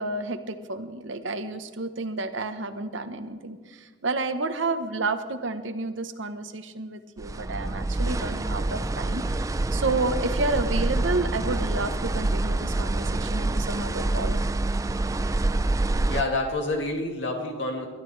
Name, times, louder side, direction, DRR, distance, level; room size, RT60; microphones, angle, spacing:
voice 1, 0.0-14.4, right 3 dB, 70° right, 9 dB, 1.0 m, -30 dB
sound 1, 7.2-16.2, right 2 dB, 15° right, 0.3 m, -26 dB
voice 2, 16.1-17.9, left 2 dB, 65° left, 1 dB, 2.5 m, -28 dB
22.5 x 12.5 x 3.3 m, 1.5 s
head